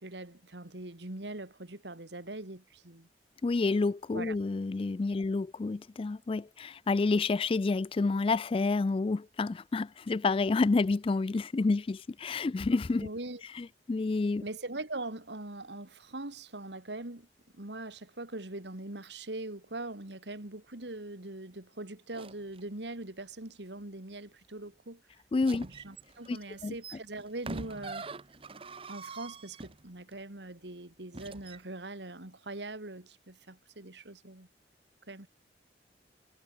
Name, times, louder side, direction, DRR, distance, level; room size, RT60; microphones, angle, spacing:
voice 1, 0.0-3.1 4.1-4.4 13.0-13.4 14.4-17.3 17.5-25.0 25.5-28.1 28.9-34.5 35.1-35.3, right 2 dB, 80° right, 2.6 m, -42 dB
voice 2, 3.4-13.1 13.6-14.4 25.3-25.7 26.3-26.4 26.6-26.7, left 3 dB, 30° left, 0.3 m, -29 dB
sound 1, 22.1-22.6 25.4-30.1 31.1-31.6, right 3 dB, 30° right, 1.0 m, -44 dB
head